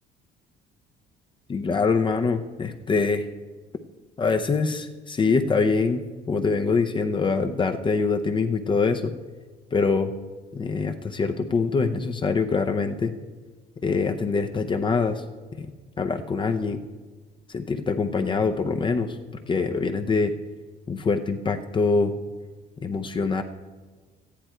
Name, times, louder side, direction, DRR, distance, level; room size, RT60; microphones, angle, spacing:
voice 1, 1.5-3.3 4.2-9.1 9.7-10.1 10.5-13.1 13.8-15.2 15.6-15.7 16.0-16.8 17.5-19.2 19.5-20.3 20.9-22.1 22.8-23.4, left 4 dB, 30° left, 6 dB, 0.7 m, -24 dB
13.5 x 10.0 x 4.5 m, 1.4 s
cardioid pair, 110°, 17 cm